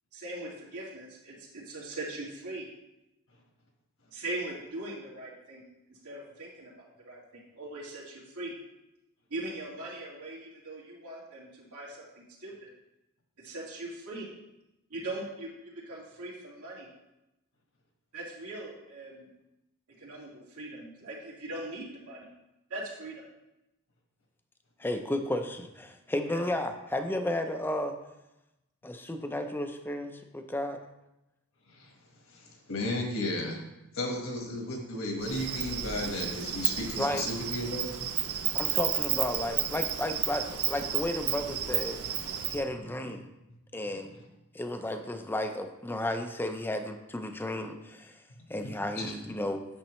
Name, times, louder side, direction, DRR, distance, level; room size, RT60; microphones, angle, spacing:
voice 1, 0.1-2.7 4.1-8.5 9.3-12.7 13.4-14.3 14.9-16.9 18.1-19.3 20.0-22.3 22.7-23.2 26.2-26.5, right 2 dB, 90° right, -5 dB, 2.3 m, -41 dB
voice 2, 24.8-28.0 28.8-30.8 37.0-37.2 38.5-42.2 42.5-43.2 43.7-44.1 44.5-48.2 48.5-49.6, left 1 dB, 10° left, 6 dB, 0.4 m, -33 dB
voice 3, 32.3-33.6 33.9-37.9 48.9-49.1, left 1 dB, 65° left, 1 dB, 1.5 m, -34 dB
Insect, 35.2-42.6, right 10 dB, 70° right, 0.6 m, -32 dB
8.6 x 6.4 x 3.1 m, 0.93 s
head